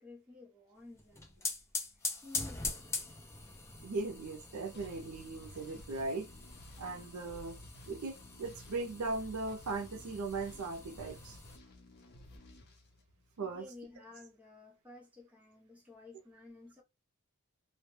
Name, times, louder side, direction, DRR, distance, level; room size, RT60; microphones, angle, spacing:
voice 1, 0.0-1.5 2.2-2.9 13.4-16.8, left 3 dB, 5° right, 0.8 m, -53 dB
sound 1, 1.0-11.6, left 3 dB, 10° left, 0.4 m, -43 dB
voice 2, 3.8-6.3 6.8-7.6 7.9-11.4 13.4-13.7, right 3 dB, 80° right, 0.5 m, -38 dB
sound 2, 4.7-13.6, left 1 dB, 50° left, 0.6 m, -55 dB
2.2 x 2.1 x 3.1 m
head